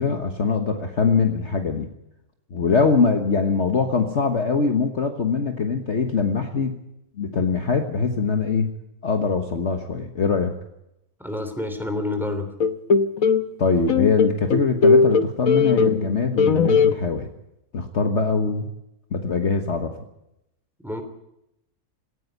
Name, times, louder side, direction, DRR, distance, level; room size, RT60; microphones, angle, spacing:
voice 1, 0.0-1.9 2.5-6.8 7.2-8.7 9.0-10.5 13.6-17.3 17.7-18.7 19.1-20.0, left 5 dB, 45° left, 5 dB, 1.5 m, -22 dB
voice 2, 11.2-12.5 20.8-21.0, left 2 dB, ahead, 7 dB, 3.2 m, -28 dB
sound 1, 12.6-13.5 13.9-16.1 16.4-16.9, left 5 dB, 65° left, 1.4 m, -18 dB
18.0 x 15.5 x 9.3 m, 0.84 s
omnidirectional pair, 1.7 m